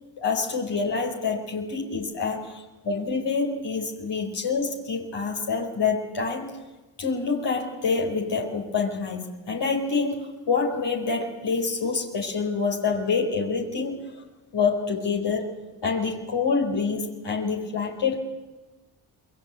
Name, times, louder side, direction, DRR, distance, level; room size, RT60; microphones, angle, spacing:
voice 1, 0.2-6.5 7.0-14.1 14.5-15.5 15.8-18.2, left 4 dB, 70° left, 0 dB, 4.7 m, -27 dB
28.0 x 21.5 x 8.4 m, 1.1 s
supercardioid pair, 55°, 44 cm